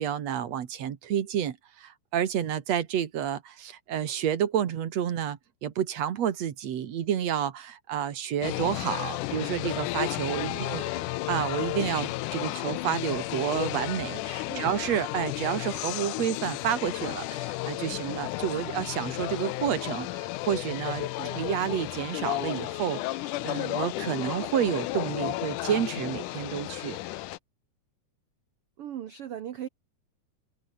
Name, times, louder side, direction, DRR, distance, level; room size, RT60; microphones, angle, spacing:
voice 1, 0.0-10.8 11.3-21.1 21.4-27.0, right 9 dB, 55° right, 2.5 m, -30 dB
sound 1, 8.4-27.4, left 18 dB, 75° left, 2.0 m, -33 dB
voice 2, 10.4-11.1 14.4-14.7 21.2-21.5 28.8-29.7, right 10 dB, 70° right, 1.4 m, -40 dB
open air
omnidirectional pair, 4.1 m